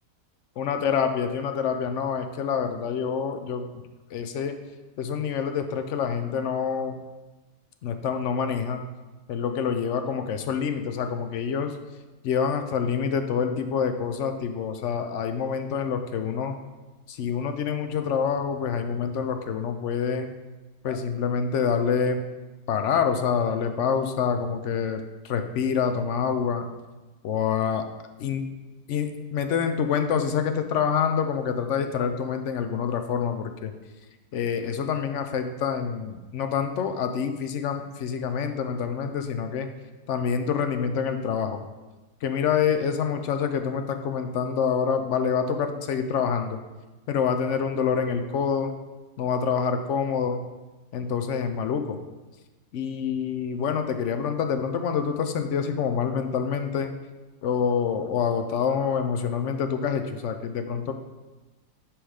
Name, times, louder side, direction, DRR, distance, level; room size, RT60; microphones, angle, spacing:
voice 1, 0.6-3.8 4.1-4.6 5.0-7.0 7.8-8.8 9.3-11.8 12.2-16.6 17.1-20.3 20.8-22.2 22.7-26.7 27.2-27.8 28.2-28.4 28.9-33.7 34.3-39.7 40.1-41.6 42.2-46.6 47.1-48.7 49.2-50.4 50.9-52.0 52.7-56.9 57.4-60.9, left 6 dB, 65° left, 7 dB, 0.8 m, -26 dB
6.1 x 4.9 x 4.8 m, 1.2 s
omnidirectional pair, 1.6 m